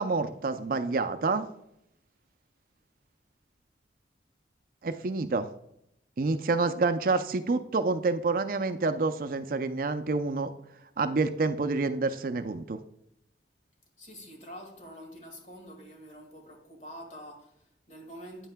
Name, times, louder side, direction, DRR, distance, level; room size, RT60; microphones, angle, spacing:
voice 1, 0.0-1.5 4.8-5.5 6.2-10.5 11.0-12.8, right 3 dB, 50° right, 0.4 m, -28 dB
voice 2, 14.0-18.5, equal, 40° left, 1.9 m, -46 dB
9.2 x 9.0 x 2.2 m
head